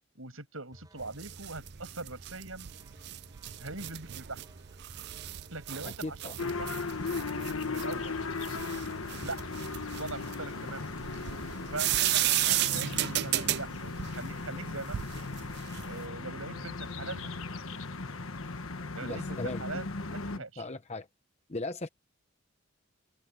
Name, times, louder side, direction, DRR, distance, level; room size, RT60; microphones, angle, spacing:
voice 1, 0.2-2.7 3.6-4.4 5.5-6.8 7.6-8.1 9.2-10.9 11.7-15.0 15.8-17.6 18.9-20.6, right 3 dB, 65° right, 7.5 m, -42 dB
sound 1, 0.7-20.3, equal, 20° right, 4.3 m, -55 dB
sound 2, 1.0-16.0, right 14 dB, 50° right, 0.4 m, -34 dB
voice 2, 5.8-6.4 19.0-19.6 20.6-21.1 21.5-21.9, left 2 dB, 30° left, 0.9 m, -37 dB
sound 3, 6.4-20.4, left 3 dB, 70° left, 1.3 m, -37 dB
head